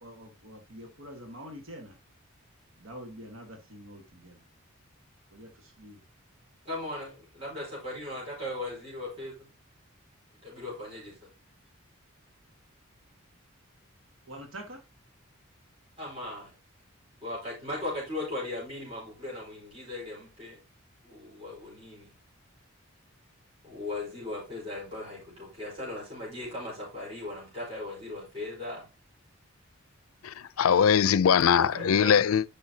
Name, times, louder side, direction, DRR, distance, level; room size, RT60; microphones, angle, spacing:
voice 1, 0.0-2.0 2.8-4.4 5.3-6.0 14.3-14.8 31.6-32.3, right 1 dB, 80° right, 1.6 m, -45 dB
voice 2, 6.6-9.5 10.4-11.3 16.0-16.5 17.2-20.6 21.0-22.2 23.6-28.9 31.4-32.1, left 2 dB, 25° right, 4.5 m, -38 dB
voice 3, 30.2-32.4, left 7 dB, 85° left, 0.5 m, -22 dB
11.0 x 5.4 x 2.8 m
head